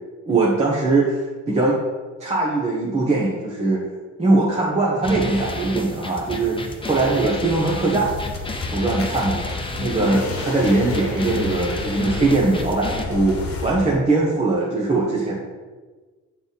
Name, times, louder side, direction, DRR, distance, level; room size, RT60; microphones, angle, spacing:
voice 1, 0.3-1.8 2.2-3.8 4.2-8.1 8.7-15.3, right 2 dB, 20° right, -5 dB, 1.1 m, -21 dB
sound 1, 5.0-13.1, left 2 dB, 15° left, 0.8 m, -31 dB
sound 2, 8.0-13.9, left 4 dB, 50° left, 1.2 m, -31 dB
6.8 x 4.0 x 4.2 m, 1.3 s
cardioid pair, 90°, 30 cm